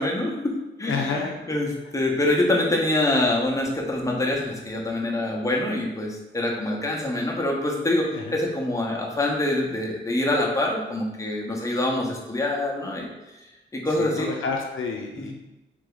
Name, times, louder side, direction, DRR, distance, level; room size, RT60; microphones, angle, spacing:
voice 1, 0.0-13.1 13.7-14.3 15.2-15.3, left 1 dB, 15° left, -2 dB, 0.9 m, -25 dB
voice 2, 0.9-1.4 8.1-8.4 14.0-15.3, left 4 dB, 80° left, 1 dB, 0.6 m, -29 dB
3.4 x 3.2 x 3.8 m, 1.0 s
cardioid pair, 80°, 20 cm